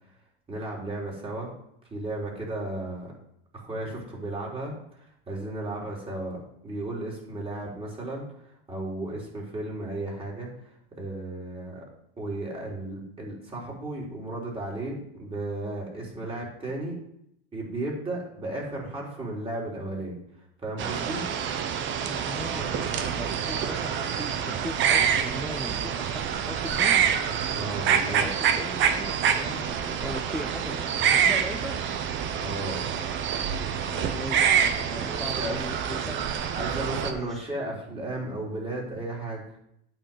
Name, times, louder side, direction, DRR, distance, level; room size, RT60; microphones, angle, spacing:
voice 1, 0.5-1.5 1.9-3.1 3.5-11.9 12.2-17.0 17.5-21.2 27.5-28.3 32.4-32.8 35.0-35.6 36.5-39.4, right 2 dB, 20° right, -3 dB, 3.8 m, -34 dB
sound 1, 20.8-37.1, right 8 dB, 40° right, 1.0 m, -26 dB
voice 2, 22.1-27.1 28.1-31.8 33.9-36.3 37.1-37.5, left 1 dB, ahead, 5 dB, 0.5 m, -39 dB
9.1 x 4.4 x 7.5 m, 0.75 s
hypercardioid pair, 105°, 29 cm